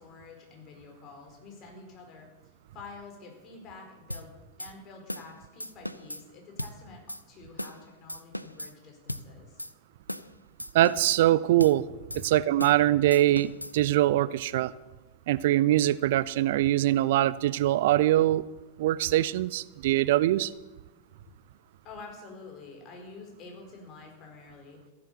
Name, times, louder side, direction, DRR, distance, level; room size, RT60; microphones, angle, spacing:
voice 1, 0.0-4.3 4.6-9.6 12.2-12.3 21.8-24.8, left 4 dB, 35° left, 1 dB, 4.7 m, -48 dB
sound 1, 4.1-4.3 4.6-4.7 5.1-5.3 5.6-6.2 6.6-6.8 7.1-7.2 7.6-7.8 8.1-8.7 9.1-9.3 9.6-9.7 10.1-10.3 10.6-11.2 11.6-11.8 12.1-12.2 12.6-12.8 13.1-13.7, left 1 dB, 90° left, 0.5 m, -37 dB
voice 2, 10.7-11.8 12.1-14.7 15.3-18.5 18.8-20.5, right 14 dB, 55° right, 19 dB, 0.4 m, -23 dB
14.5 x 11.0 x 7.0 m, 1.2 s
figure-of-eight pair, 90°, 0 cm